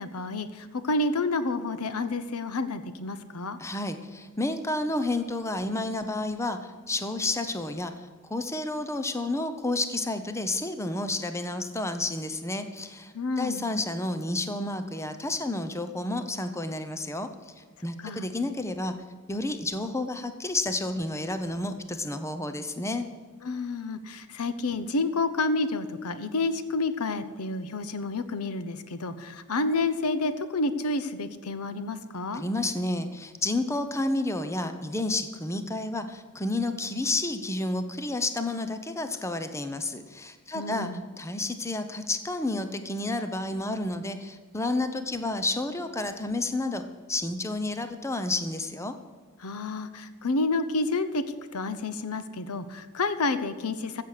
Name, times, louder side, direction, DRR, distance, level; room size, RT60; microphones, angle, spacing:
voice 1, 0.0-3.6 13.1-13.6 18.0-18.3 23.4-32.4 40.5-41.0 49.4-51.2 51.5-54.0, left 3 dB, 80° left, 12 dB, 0.8 m, -29 dB
voice 2, 3.6-18.9 19.3-23.1 32.3-40.9 41.2-46.8 47.1-48.9, left 2 dB, 10° left, 9 dB, 0.7 m, -30 dB
14.0 x 7.6 x 6.6 m, 1.6 s
head